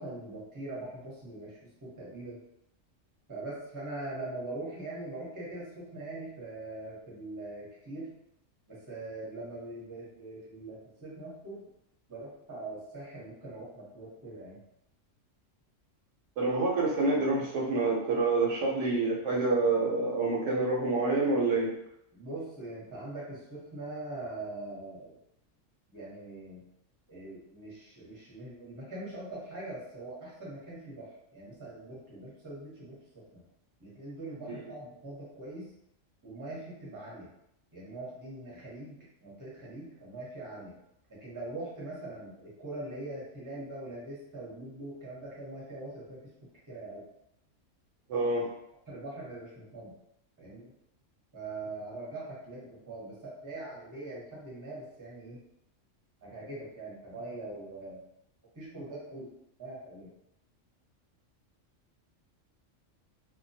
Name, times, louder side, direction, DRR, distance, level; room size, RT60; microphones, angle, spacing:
voice 1, 0.0-2.4 3.3-8.1 8.7-11.7 12.1-14.6 22.1-25.2 25.9-26.6 27.1-33.4 33.8-35.7 36.2-37.3 37.7-40.8 41.1-46.2 46.7-47.0 48.9-49.9 50.4-50.7 51.3-55.4 56.2-58.0 58.5-59.3 59.6-60.1, right 2 dB, 20° right, -6 dB, 0.7 m, -42 dB
voice 2, 16.4-21.7 34.5-34.6 48.1-48.5, right 3 dB, 75° right, -2 dB, 0.9 m, -27 dB
2.2 x 2.2 x 2.6 m, 0.79 s
omnidirectional pair, 1.3 m